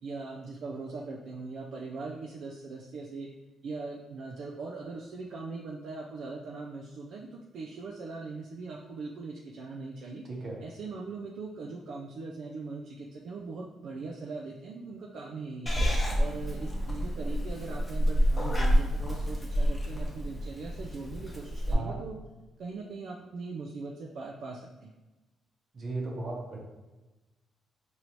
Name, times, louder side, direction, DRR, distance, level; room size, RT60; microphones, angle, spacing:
voice 1, 0.0-3.3 3.6-10.3 10.6-15.7 16.2-22.1 22.6-24.9, right 3 dB, 65° right, -1 dB, 0.4 m, -40 dB
voice 2, 10.2-10.6 21.7-22.0 25.7-26.6, right 2 dB, 45° right, -2 dB, 1.0 m, -36 dB
Purr / Meow, 15.7-21.7, equal, 20° left, 0.8 m, -28 dB
4.1 x 2.7 x 3.0 m, 1.1 s
cardioid pair, 90°, 0 cm